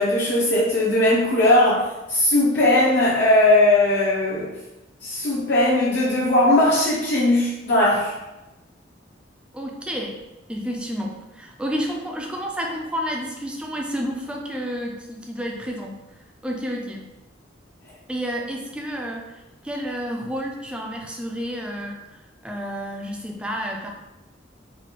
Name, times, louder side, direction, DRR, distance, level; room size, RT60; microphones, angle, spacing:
voice 1, 0.0-1.8 2.1-4.5 5.0-8.1, left 1 dB, 60° left, -7 dB, 0.7 m, -18 dB
voice 2, 9.5-10.2 10.5-16.0 16.4-17.1 18.1-23.9, equal, 5° right, 0 dB, 0.3 m, -30 dB
4.1 x 2.3 x 2.9 m, 1.0 s
head